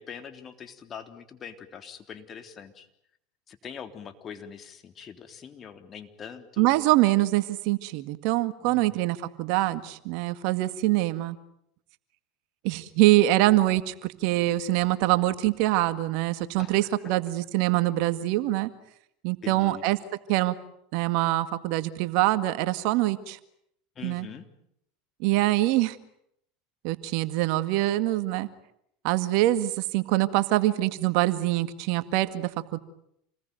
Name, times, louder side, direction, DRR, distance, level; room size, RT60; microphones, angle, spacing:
voice 1, 0.0-2.9 3.5-6.7 8.6-8.9 16.6-16.9 19.4-19.8 24.0-24.5, left 7 dB, 35° left, 7 dB, 3.6 m, -43 dB
voice 2, 6.6-11.4 12.6-18.7 19.2-20.0 20.3-20.6 20.9-23.4 24.0-24.3 25.2-26.0 26.8-28.5 29.0-32.8, right 17 dB, 65° right, 12 dB, 1.8 m, -24 dB
28.5 x 20.5 x 9.3 m, 0.73 s
hypercardioid pair, 90°, 0 cm